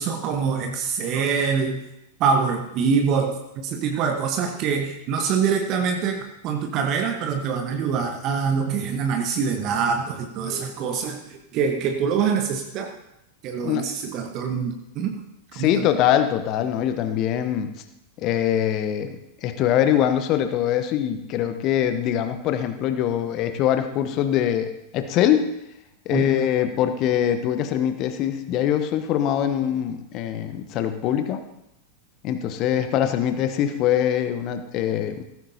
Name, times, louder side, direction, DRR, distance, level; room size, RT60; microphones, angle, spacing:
voice 1, 0.0-1.8 2.2-13.0 13.4-15.2 15.5-15.9 26.1-26.2, right 6 dB, 40° right, 4 dB, 1.2 m, -25 dB
voice 2, 15.6-17.7 18.2-25.5 26.0-31.4 32.2-35.2, left 10 dB, 40° left, 9 dB, 1.1 m, -23 dB
16.5 x 14.0 x 2.8 m, 0.85 s
figure-of-eight pair, 90°, 0 cm